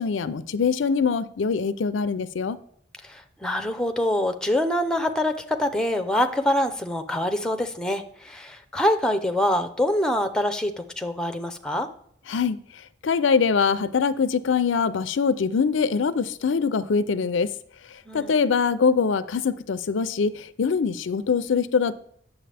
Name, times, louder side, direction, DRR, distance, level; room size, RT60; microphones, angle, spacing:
voice 1, 0.0-2.6 12.3-12.6 13.0-17.5 18.1-21.9, left 5 dB, 90° left, 0.5 m, -23 dB
voice 2, 3.0-11.9 18.1-18.4, left 1 dB, 5° left, 0.6 m, -25 dB
8.9 x 7.0 x 3.4 m
head